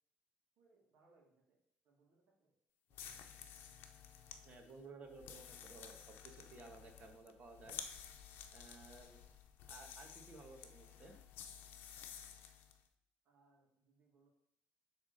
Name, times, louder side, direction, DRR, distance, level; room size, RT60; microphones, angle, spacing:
voice 1, 0.6-2.6 2.9-3.3 13.2-14.3, right 3 dB, 65° right, 0 dB, 2.0 m, -73 dB
sound 1, 2.9-12.8, left 8 dB, 70° left, 0.8 m, -53 dB
voice 2, 4.4-7.8 8.5-9.2 9.7-11.1, right 3 dB, 35° right, 4 dB, 1.4 m, -56 dB
8.0 x 3.6 x 6.5 m, 0.73 s
cardioid pair, 115°, 4 cm